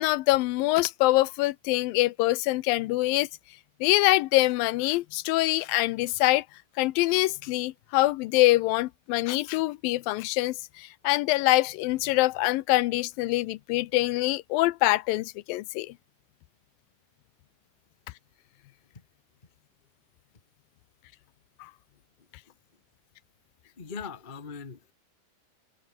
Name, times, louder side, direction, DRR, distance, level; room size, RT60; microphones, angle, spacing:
voice 1, 0.0-3.3 3.8-6.4 6.8-15.9 21.6-21.7, left 18 dB, 85° left, 2.5 m, -24 dB
voice 2, 23.8-24.9, left 5 dB, 40° left, 0.7 m, -40 dB
omnidirectional pair, 4.0 m